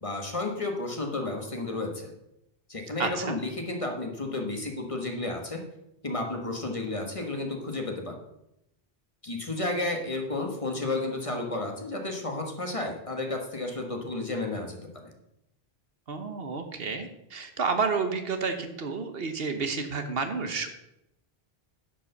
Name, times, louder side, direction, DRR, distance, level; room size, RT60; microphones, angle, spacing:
voice 1, 0.0-2.1 2.7-5.6 6.0-8.2 9.2-15.1, left 2 dB, 35° left, 3 dB, 1.4 m, -32 dB
voice 2, 3.0-3.4 16.1-20.7, right 4 dB, 70° right, 7 dB, 1.3 m, -30 dB
10.5 x 5.2 x 6.6 m, 0.85 s
omnidirectional pair, 1.0 m